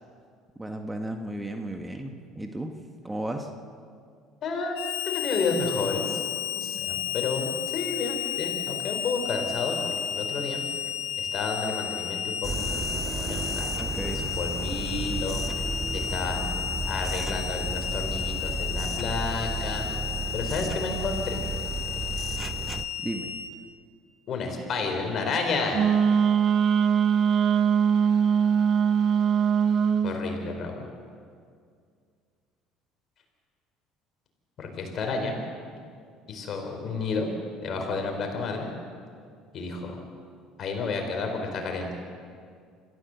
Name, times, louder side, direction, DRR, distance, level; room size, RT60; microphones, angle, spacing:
voice 1, 0.6-2.7 3.0-3.5 13.8-14.3 23.0-23.3, right 1 dB, 10° right, 4 dB, 1.7 m, -34 dB
voice 2, 4.4-4.8 5.1-6.0 6.5-10.6 11.2-15.4 15.9-16.4 16.9-19.8 20.3-21.4 24.3-25.9 30.0-30.8 34.6-35.3 36.3-37.3 37.6-38.7 39.5-40.0 40.6-41.9, left 4 dB, 50° left, 3 dB, 4.8 m, -31 dB
Harmonica, 4.7-23.5, left 10 dB, 75° left, 1.3 m, -33 dB
sound 1, 12.4-22.9, right 4 dB, 30° right, 1.0 m, -33 dB
Wind instrument woodwind instrument, 25.7-30.1, right 7 dB, 50° right, 1.0 m, -21 dB
26.5 x 15.0 x 6.8 m, 2.2 s
hypercardioid pair, 65°, 0 cm